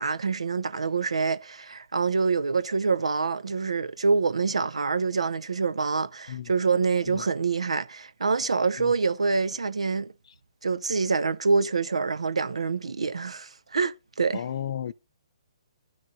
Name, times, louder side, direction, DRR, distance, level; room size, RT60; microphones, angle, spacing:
voice 1, 0.0-10.1 10.6-14.4, right 4 dB, 75° right, 0.6 m, -26 dB
voice 2, 14.3-14.9, left 10 dB, 55° left, 0.5 m, -33 dB
16.0 x 6.3 x 2.6 m
figure-of-eight pair, 135°, 3 cm